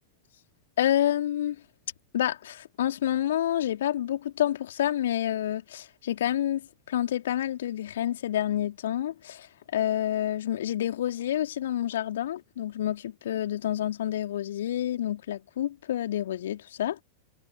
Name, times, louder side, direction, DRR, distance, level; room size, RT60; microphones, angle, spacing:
voice 1, 0.8-1.6 2.1-9.5 9.7-16.9, left 11 dB, 60° left, 3.6 m, -28 dB
figure-of-eight pair, 90°, 0 cm